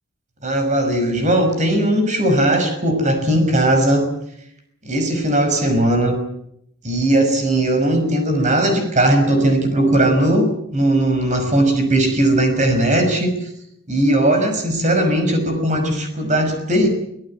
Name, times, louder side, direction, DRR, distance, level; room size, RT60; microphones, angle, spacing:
voice 1, 0.4-4.1 4.8-6.2 6.8-13.5 13.9-16.9, right 1 dB, 35° right, 6 dB, 5.9 m, -18 dB
24.5 x 17.0 x 8.7 m, 0.75 s
head